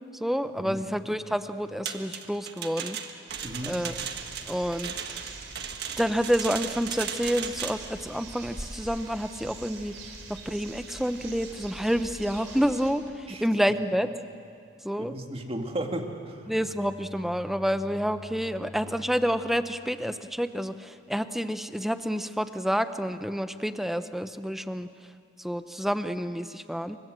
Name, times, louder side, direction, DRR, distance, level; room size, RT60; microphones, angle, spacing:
voice 1, 0.1-3.0 3.7-3.9 4.5-5.2 6.0-10.0 10.3-14.1 14.8-15.2 16.5-24.9 25.4-27.0, equal, ahead, 10 dB, 0.8 m, -29 dB
sound 1, 1.9-7.9, right 8 dB, 55° right, 1.6 m, -36 dB
sound 2, 3.3-12.9, right 3 dB, 85° right, 4.0 m, -44 dB
voice 2, 3.4-3.8 13.3-13.4 15.0-16.4, right 1 dB, 30° right, 3 dB, 2.2 m, -34 dB
Bowed string instrument, 16.2-20.5, left 2 dB, 45° left, 6.4 m, -47 dB
27.5 x 24.5 x 7.7 m, 2.3 s
head